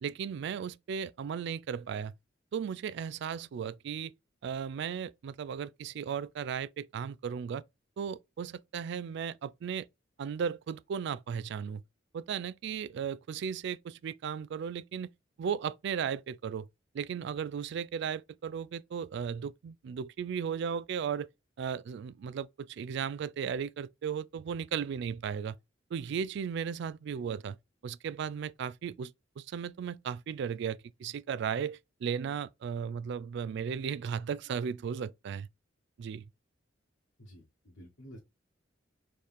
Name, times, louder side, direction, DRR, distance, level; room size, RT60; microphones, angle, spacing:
voice 1, 0.0-2.1 2.5-4.1 4.4-7.6 8.0-9.9 10.2-11.8 12.1-15.1 15.4-16.7 16.9-21.3 21.6-25.6 25.9-27.6 27.8-35.5 36.0-36.2, right 7 dB, 65° right, 0.3 m, -36 dB
voice 2, 37.2-38.2, equal, 70° left, 1.3 m, -51 dB
4.5 x 3.1 x 3.5 m
head